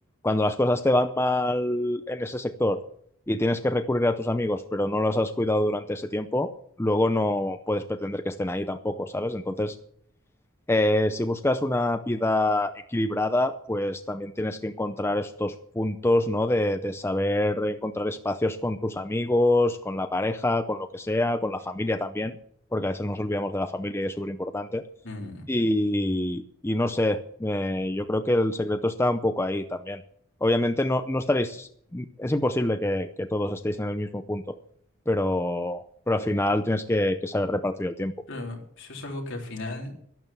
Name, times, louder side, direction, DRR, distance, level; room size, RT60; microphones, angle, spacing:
voice 1, 0.2-2.8 3.3-6.5 6.8-9.8 10.7-22.3 22.7-24.8 25.5-30.0 30.4-34.5 35.1-38.1, left 1 dB, 10° left, 8 dB, 0.6 m, -26 dB
voice 2, 25.0-25.4 38.3-40.0, left 2 dB, 65° left, 1 dB, 3.6 m, -36 dB
12.0 x 11.5 x 7.3 m, 0.64 s
head